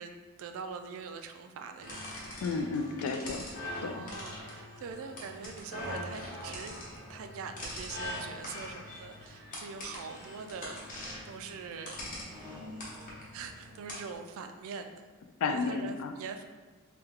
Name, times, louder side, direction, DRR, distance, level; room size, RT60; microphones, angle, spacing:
voice 1, 0.0-2.4 3.8-6.8 7.1-10.8 11.2-13.0 13.3-15.0 15.5-16.5, right 5 dB, 65° right, 7 dB, 0.3 m, -43 dB
sound 1, 1.8-14.1, left 1 dB, 35° left, 0.9 m, -42 dB
voice 2, 2.4-3.5 3.8-4.0 15.4-16.1, left 4 dB, 70° left, 7 dB, 0.3 m, -32 dB
3.2 x 2.3 x 3.4 m, 1.3 s
head